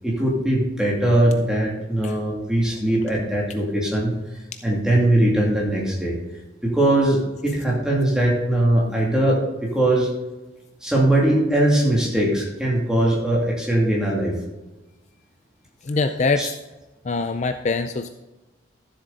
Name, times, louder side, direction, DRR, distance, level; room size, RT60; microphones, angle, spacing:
voice 1, 0.0-6.2 6.6-10.1 10.8-14.3 16.4-16.5, right 1 dB, 5° right, -4 dB, 2.7 m, -21 dB
voice 2, 15.8-16.6 17.0-18.1, left 3 dB, 40° left, 8 dB, 0.4 m, -23 dB
12.5 x 7.6 x 4.1 m, 1.1 s
head